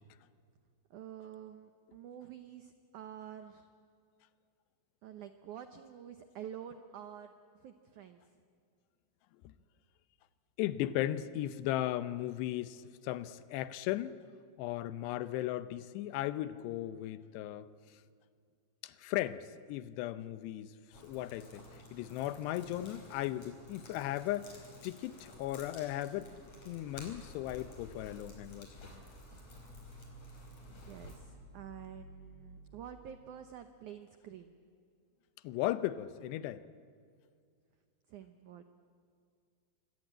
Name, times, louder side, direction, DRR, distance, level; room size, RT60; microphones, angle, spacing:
voice 1, 0.9-3.7 5.0-7.3 7.6-8.2 30.7-34.6 38.1-38.6, right 9 dB, 80° right, 8 dB, 1.7 m, -48 dB
voice 2, 10.6-14.2 14.6-17.7 18.8-20.7 21.0-24.5 24.8-26.4 26.7-29.0 35.4-36.6, left 14 dB, 80° left, 14 dB, 2.9 m, -36 dB
sound 1, 20.9-31.2, left 1 dB, 40° left, 5.7 m, -54 dB
sound 2, 26.2-33.0, equal, 20° right, 6.5 m, -55 dB
26.0 x 24.5 x 8.9 m, 2.2 s
omnidirectional pair, 4.9 m